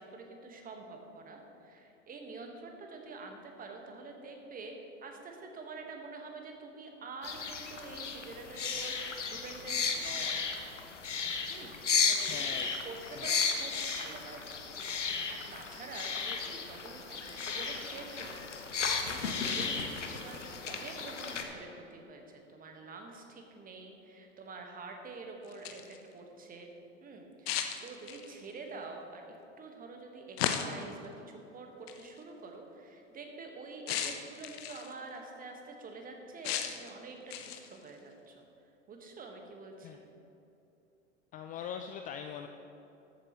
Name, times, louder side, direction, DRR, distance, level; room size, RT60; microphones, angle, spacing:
voice 1, 0.0-4.8 5.0-10.4 11.5-11.8 12.1-12.6 12.8-26.7 27.0-38.4 38.9-40.0, right 3 dB, 25° right, 3 dB, 1.4 m, -47 dB
sound 1, 7.2-21.4, left 5 dB, 85° left, 0.9 m, -34 dB
voice 2, 12.3-12.7 13.2-13.3 39.8-40.0 41.3-42.5, left 8 dB, 25° left, 6 dB, 0.4 m, -41 dB
sound 2, 25.4-26.0 27.5-28.4 30.4-30.9 31.9-32.1 33.9-34.9 36.4-36.9 37.3-37.8, left 9 dB, 60° left, 0.9 m, -35 dB
13.5 x 8.5 x 3.1 m, 2.9 s
figure-of-eight pair, 85°, 35 cm